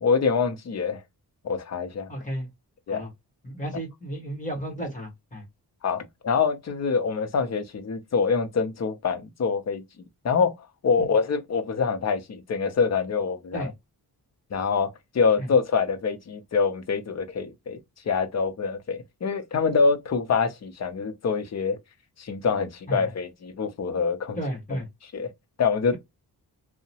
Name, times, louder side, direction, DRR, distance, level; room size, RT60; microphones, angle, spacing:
voice 1, 0.0-1.0 1.4-2.1 2.9-3.0 5.8-9.8 10.2-10.5 10.8-13.7 14.5-17.8 18.1-21.8 22.2-24.4 25.1-25.3 25.6-26.0, left 5 dB, 45° left, 0.6 m, -25 dB
voice 2, 2.1-2.5 2.9-3.1 3.4-5.4 11.0-11.1 13.5-13.7 15.4-15.5 22.9-23.0 24.3-24.9, equal, 20° left, 1.2 m, -33 dB
2.8 x 2.0 x 2.7 m
wide cardioid pair, 180°, 39 cm